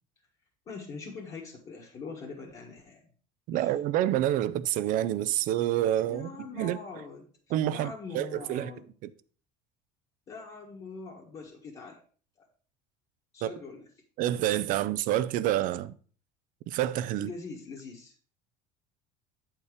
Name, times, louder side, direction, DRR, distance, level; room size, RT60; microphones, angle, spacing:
voice 1, 0.7-3.1 3.5-3.7 6.1-7.3 7.7-8.8 10.3-12.0 12.4-12.5 13.3-13.9 17.2-18.1, left 4 dB, 35° left, 1.7 m, -43 dB
voice 2, 3.5-6.8 7.5-8.7 13.4-13.5 14.2-15.9 16.7-17.3, right 12 dB, 55° right, 0.5 m, -28 dB
8.3 x 4.5 x 4.9 m
cardioid pair, 130°, 16 cm